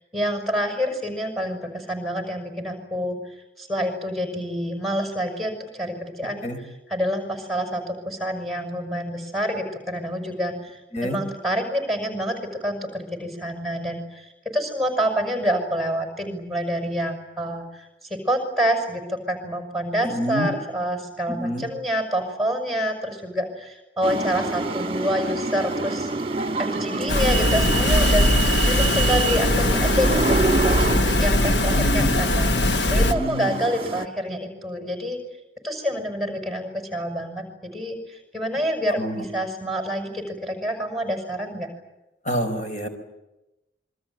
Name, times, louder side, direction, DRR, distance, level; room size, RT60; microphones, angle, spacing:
voice 1, 0.0-26.1 26.6-30.8 31.2-35.2 35.6-41.7, equal, ahead, 5 dB, 6.2 m, -27 dB
voice 2, 20.0-20.5 21.3-21.6 31.7-32.2 33.0-33.5 38.9-39.3 42.2-42.9, equal, 40° left, 6 dB, 4.7 m, -27 dB
sound 1, 24.0-34.0, right 3 dB, 30° right, 1.6 m, -27 dB
sound 2, 27.1-33.1, left 1 dB, 65° left, 1.2 m, -20 dB
27.5 x 23.5 x 9.1 m, 0.98 s
head